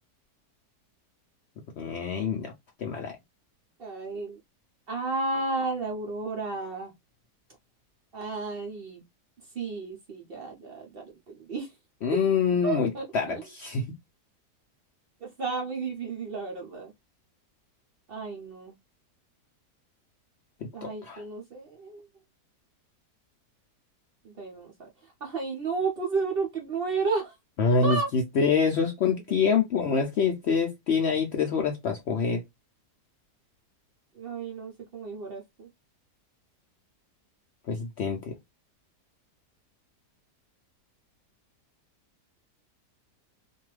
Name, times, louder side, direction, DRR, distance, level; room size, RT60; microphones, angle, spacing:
voice 1, 1.8-2.5 2.8-3.2 12.0-13.9 20.6-21.2 27.6-32.4 37.6-38.4, left 5 dB, 90° left, 0.5 m, -26 dB
voice 2, 3.8-4.4 4.9-6.9 8.1-9.0 9.5-11.7 12.6-13.4 15.2-16.9 18.1-18.7 20.7-22.0 24.2-24.9 25.2-27.3 27.8-28.1 34.1-35.7, right 4 dB, 65° right, 0.5 m, -32 dB
2.6 x 2.3 x 3.1 m
omnidirectional pair, 1.8 m